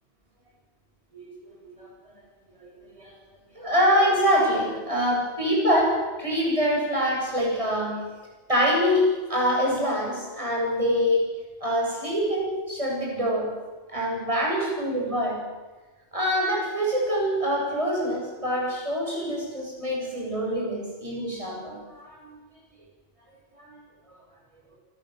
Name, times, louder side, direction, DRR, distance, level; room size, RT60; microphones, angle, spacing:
voice 1, 1.1-1.9 2.6-3.1 3.5-8.0 8.5-11.3 11.6-13.5 13.9-15.4 16.1-22.3 23.6-23.7, equal, 25° right, -3 dB, 8.0 m, -25 dB
28.0 x 20.0 x 8.1 m, 1.2 s
omnidirectional pair, 1.2 m